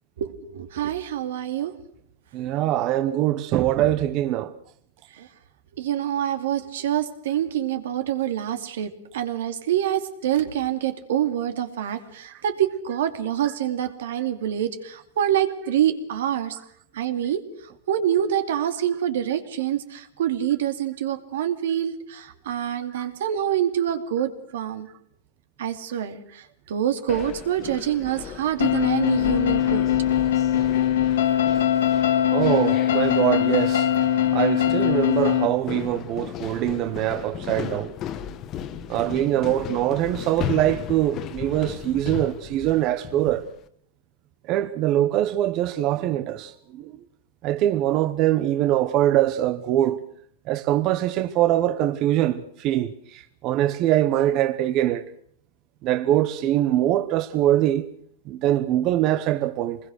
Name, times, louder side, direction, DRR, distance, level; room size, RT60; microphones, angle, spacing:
voice 1, 0.2-1.7 5.2-5.3 5.8-16.6 16.9-17.4 17.9-24.9 25.6-26.2 26.7-29.9, right 10 dB, 75° right, 2.5 m, -26 dB
voice 2, 2.3-4.5 13.4-13.5 22.9-23.1 28.4-28.5 28.7-28.8 30.4-30.6 32.3-33.9 34.3-37.9 38.9-43.5 44.5-46.9 47.4-50.0 50.5-55.0 55.8-57.8 58.3-59.8, right 13 dB, 35° right, 0.9 m, -23 dB
sound 1, 27.1-43.6, left 9 dB, 30° left, 1.3 m, -36 dB
sound 2, 28.6-35.5, left 11 dB, 80° left, 2.7 m, -21 dB
25.0 x 20.5 x 6.4 m
supercardioid pair, 145°, 0 cm